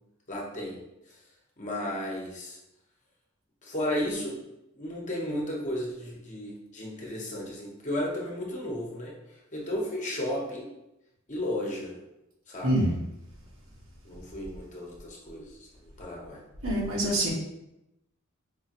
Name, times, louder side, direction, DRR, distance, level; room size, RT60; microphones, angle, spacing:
voice 1, 0.3-0.8 1.1-1.2 1.6-2.6 3.6-4.4 4.7-10.7 11.3-12.0 12.5-12.7 14.0-15.7 16.0-16.4, left 1 dB, 35° left, -3 dB, 1.0 m, -34 dB
voice 2, 12.6-13.0 16.6-17.3, right 1 dB, 70° right, -3 dB, 1.3 m, -25 dB
5.1 x 3.1 x 3.0 m, 0.88 s
head